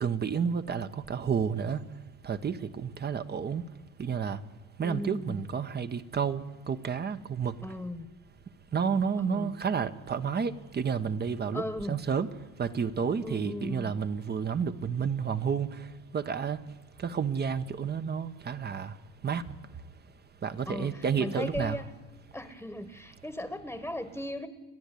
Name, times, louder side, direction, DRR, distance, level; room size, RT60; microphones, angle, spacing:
voice 1, 0.0-1.8 2.2-3.6 4.0-4.4 4.8-7.6 8.7-11.6 11.9-12.3 12.6-15.8 16.1-16.6 17.0-18.9 19.2-19.4 20.4-21.8, right 6 dB, 30° right, 11 dB, 1.2 m, -30 dB
voice 2, 4.8-5.5 7.6-8.1 9.1-9.6 11.5-12.0 13.2-13.9 20.6-21.9 22.3-24.5, left 1 dB, 5° left, 11 dB, 1.4 m, -37 dB
30.0 x 10.5 x 8.5 m, 1.2 s
supercardioid pair, 80°, 31 cm